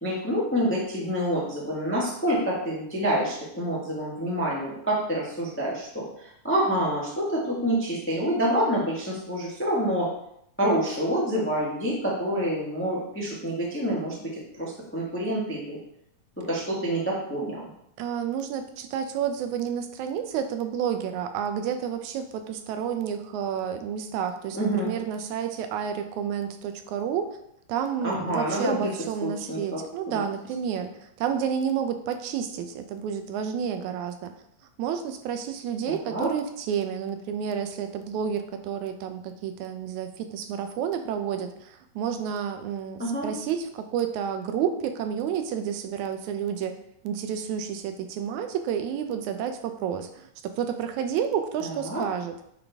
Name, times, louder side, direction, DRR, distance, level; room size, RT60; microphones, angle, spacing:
voice 1, 0.0-10.1 10.6-14.3 14.6-15.8 16.5-17.6 24.5-24.9 28.0-28.9 29.2-29.8 30.1-30.2 35.9-36.3 43.0-43.3 51.6-52.0, right 1 dB, 15° left, -4 dB, 0.5 m, -27 dB
voice 2, 18.0-27.4 27.7-30.9 31.2-34.3 34.8-46.7 47.0-52.3, right 8 dB, 90° right, 7 dB, 2.1 m, -30 dB
8.9 x 4.0 x 3.5 m, 0.75 s
omnidirectional pair, 3.3 m